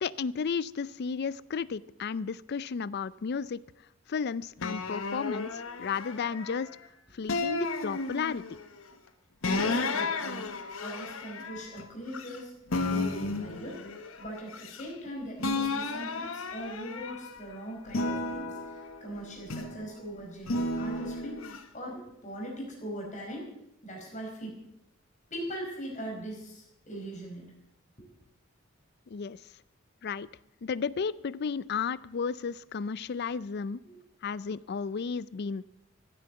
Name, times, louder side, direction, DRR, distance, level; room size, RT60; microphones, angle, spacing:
voice 1, 0.0-3.6 4.1-6.7 7.1-8.4 29.1-29.4 30.0-30.3 30.6-33.8 34.2-35.6, left 5 dB, 50° left, 20 dB, 0.4 m, -33 dB
sound 1, 4.6-6.8 7.3-8.6 9.4-12.4 12.7-15.1 15.4-17.4 17.9-19.9 20.5-21.6, left 3 dB, 80° left, 1.3 m, -33 dB
voice 2, 9.4-12.5 12.9-13.8 14.2-21.4 21.7-23.5 23.8-24.6 25.3-27.5 33.8-34.0, right 1 dB, 35° left, -1 dB, 4.8 m, -40 dB
15.0 x 9.1 x 7.8 m, 0.82 s
head